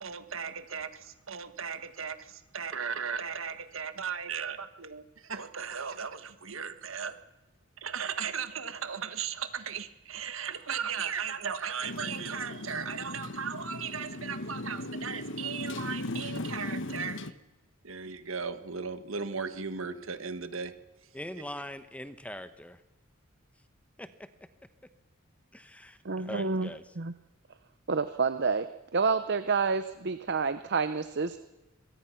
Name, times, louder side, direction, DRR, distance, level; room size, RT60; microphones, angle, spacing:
voice 1, 0.0-7.2 7.8-17.2 17.8-20.7, right 6 dB, 70° right, 10 dB, 1.6 m, -36 dB
Motorcycle, 11.8-17.3, left 2 dB, 60° left, 1.1 m, -38 dB
voice 2, 21.1-22.8 24.0-24.1 25.5-26.8, left 1 dB, 5° left, 11 dB, 1.0 m, -42 dB
voice 3, 26.0-26.7 27.0-27.1 27.9-28.7 28.9-31.4, right 4 dB, 55° right, 11 dB, 0.8 m, -28 dB
24.5 x 22.5 x 5.9 m, 1.1 s
head